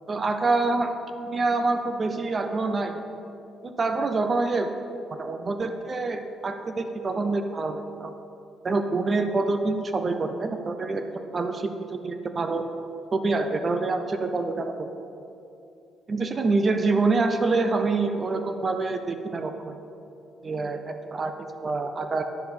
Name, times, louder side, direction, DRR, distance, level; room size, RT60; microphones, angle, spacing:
voice 1, 0.1-0.9 1.2-3.0 3.6-4.7 5.1-8.1 8.6-12.7 13.1-14.9 16.1-19.8 20.4-22.2, right 3 dB, 35° right, 7 dB, 0.6 m, -26 dB
10.0 x 6.5 x 4.3 m, 2.7 s
cardioid pair, 90°, 0 cm